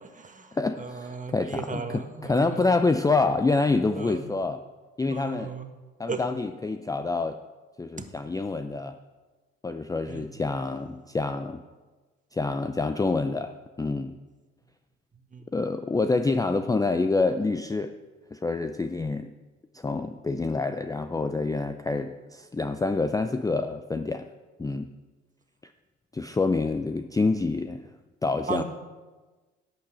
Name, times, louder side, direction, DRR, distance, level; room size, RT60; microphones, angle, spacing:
voice 1, 0.0-2.7 3.9-4.3 5.1-5.7 6.1-6.2 8.0-8.1 10.1-10.2 15.3-15.5 28.5-28.6, right 5 dB, 25° right, 7 dB, 1.5 m, -36 dB
voice 2, 0.5-4.6 5.0-5.5 6.0-7.4 7.8-9.0 9.6-11.6 12.3-14.2 15.5-17.9 18.3-19.3 19.7-24.3 24.6-24.9 26.1-27.8 28.2-28.6, left 3 dB, 10° left, 9 dB, 0.5 m, -27 dB
11.5 x 6.1 x 7.6 m, 1.3 s
hypercardioid pair, 65°, 31 cm